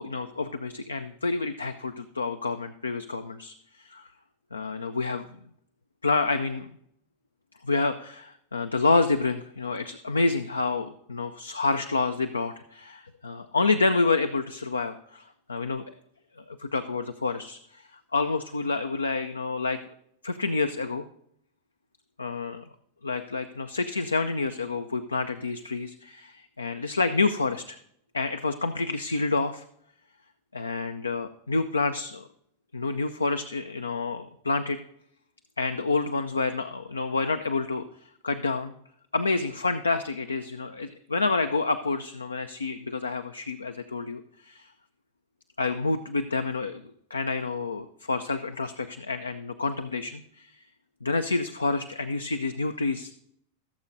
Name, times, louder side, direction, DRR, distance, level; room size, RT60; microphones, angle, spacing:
voice 1, 0.0-4.1 4.5-5.2 6.0-6.7 7.6-15.2 15.5-15.8 16.4-17.8 18.1-19.8 20.2-21.1 22.2-22.6 23.0-27.8 28.1-29.6 30.5-32.3 32.7-34.8 35.6-37.8 38.2-38.7 39.1-44.7 45.6-46.8 47.1-50.5 51.0-53.1, left 3 dB, 75° left, 9 dB, 0.4 m, -28 dB
16.5 x 7.2 x 2.6 m, 0.72 s
figure-of-eight pair, 90°, 0 cm